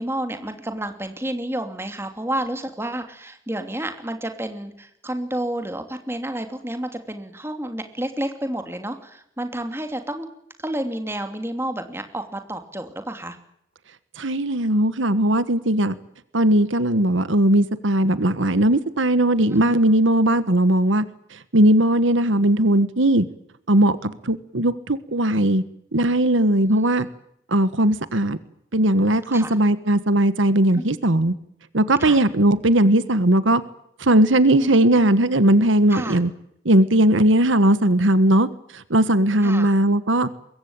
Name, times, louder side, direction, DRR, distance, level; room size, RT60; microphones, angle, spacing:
voice 1, 0.0-10.3 10.6-13.4 19.5-19.8 26.6-26.7 29.3-29.5 30.7-30.8 32.0-32.2 34.6-35.0 35.9-36.2 39.4-39.7, right 1 dB, 10° right, 6 dB, 2.8 m, -30 dB
voice 2, 14.2-15.9 16.3-21.1 21.3-23.2 23.7-25.6 25.9-27.1 27.5-28.4 28.7-31.3 31.7-33.6 34.0-36.3 36.6-38.5 38.7-40.3, right 1 dB, 80° right, 14 dB, 1.4 m, -18 dB
24.5 x 22.0 x 8.8 m, 0.74 s
head